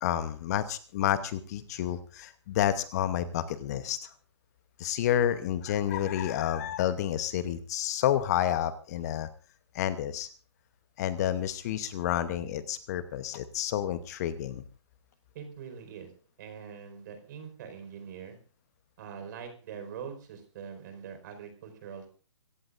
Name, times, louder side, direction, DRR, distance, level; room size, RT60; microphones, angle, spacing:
voice 1, 0.0-4.1 4.8-9.3 9.7-10.3 11.0-14.6, left 11 dB, 35° left, 13 dB, 1.0 m, -29 dB
voice 2, 15.3-16.1 16.4-18.4 19.0-22.1, right 7 dB, 40° right, 7 dB, 4.8 m, -43 dB
25.5 x 15.0 x 2.6 m, 0.37 s
hypercardioid pair, 140°, 15 cm